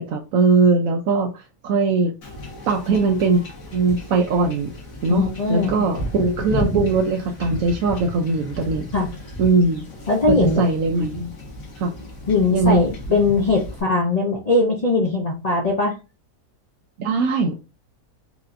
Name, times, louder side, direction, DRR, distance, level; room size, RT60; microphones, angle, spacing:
voice 1, 0.0-2.1 2.7-3.4 3.7-4.7 5.0-8.9 9.4-9.8 10.3-11.3 11.8-11.9 12.5-12.8 17.0-17.7, right 4 dB, 70° right, 2 dB, 0.9 m, -20 dB
Wind / Ocean / Boat Water vehicle, 2.2-13.8, left 2 dB, 55° left, 1.8 m, -33 dB
voice 2, 5.1-5.9 8.9-9.1 10.1-10.6 12.3-15.9, left 3 dB, 75° left, -2 dB, 0.3 m, -20 dB
4.8 x 2.8 x 2.5 m, 0.28 s
omnidirectional pair, 1.8 m